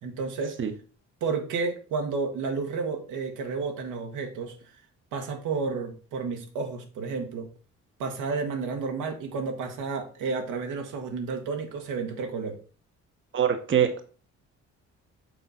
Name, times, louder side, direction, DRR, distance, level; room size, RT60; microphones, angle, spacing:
voice 1, 0.0-0.6 1.2-4.5 5.1-7.5 8.0-12.6, right 4 dB, 85° right, 4 dB, 1.5 m, -31 dB
voice 2, 13.3-14.0, right 9 dB, 40° right, 7 dB, 0.9 m, -23 dB
6.7 x 3.7 x 5.6 m, 0.40 s
cardioid pair, 90°, 30 cm